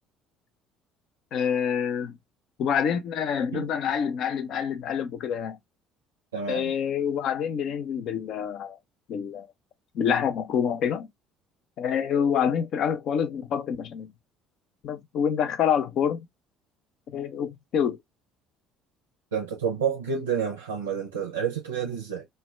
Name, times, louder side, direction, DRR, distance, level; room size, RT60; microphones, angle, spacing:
voice 1, 1.3-2.2 2.6-5.6 6.5-8.8 9.1-9.5 9.9-11.1 11.8-14.1 14.8-16.3 17.1-18.0, left 8 dB, 55° left, 0.4 m, -27 dB
voice 2, 6.3-6.7 19.3-22.3, right 7 dB, 80° right, 0.4 m, -29 dB
2.1 x 2.1 x 3.1 m
figure-of-eight pair, 55°, 0 cm